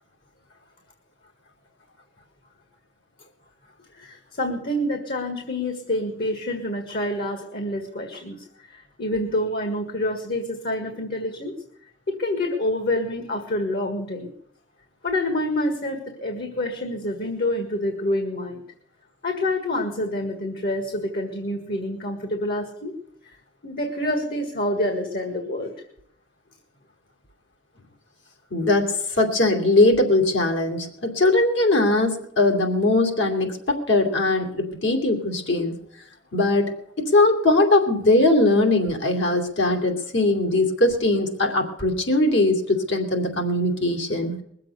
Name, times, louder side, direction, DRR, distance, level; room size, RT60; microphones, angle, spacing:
voice 1, 4.0-11.5 12.1-14.3 15.0-18.6 19.2-22.9 23.2-23.4 23.6-25.7, left 1 dB, 55° left, 5 dB, 1.8 m, -27 dB
voice 2, 28.5-35.7 36.3-36.7 37.0-44.4, left 2 dB, 70° left, 2 dB, 2.7 m, -20 dB
21.0 x 7.7 x 8.1 m, 0.73 s
head